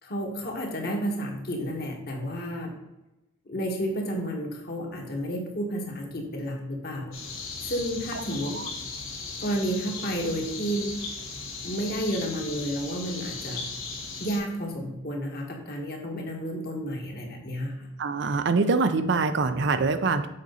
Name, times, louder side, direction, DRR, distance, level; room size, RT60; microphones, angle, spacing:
voice 1, 0.0-2.7 3.4-7.1 7.6-8.6 9.4-11.0 11.6-13.6 14.2-17.9, equal, 45° left, 1 dB, 1.6 m, -31 dB
sound 1, 7.1-14.4, left 4 dB, 75° left, 1.8 m, -37 dB
voice 2, 18.0-20.3, right 4 dB, 55° right, 10 dB, 0.5 m, -24 dB
7.4 x 5.3 x 4.0 m, 0.98 s
head